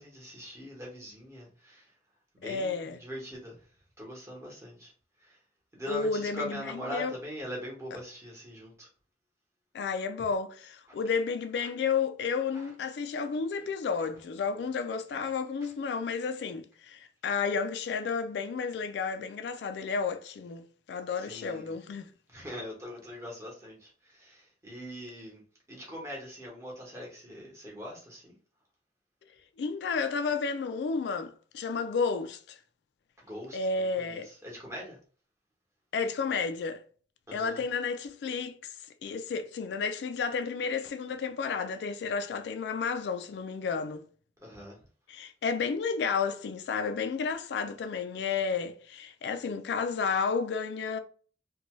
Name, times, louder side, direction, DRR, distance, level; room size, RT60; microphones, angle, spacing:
voice 1, 0.0-1.9 2.3-3.7 4.0-4.9 5.2-5.4 5.7-8.9 11.6-11.7 12.5-12.7 14.0-14.1 15.6-15.7 21.2-21.7 22.3-25.4 25.7-28.3 33.2-35.0 37.3-37.6 44.4-44.8, left 1 dB, 15° right, 1.0 m, -42 dB
voice 2, 2.4-3.0 5.9-6.6 6.9-7.1 9.7-22.1 29.6-32.6 33.5-34.3 35.9-36.8 37.3-38.8 39.0-44.1 45.1-51.0, left 5 dB, 70° left, 0.3 m, -32 dB
2.7 x 2.2 x 3.0 m
head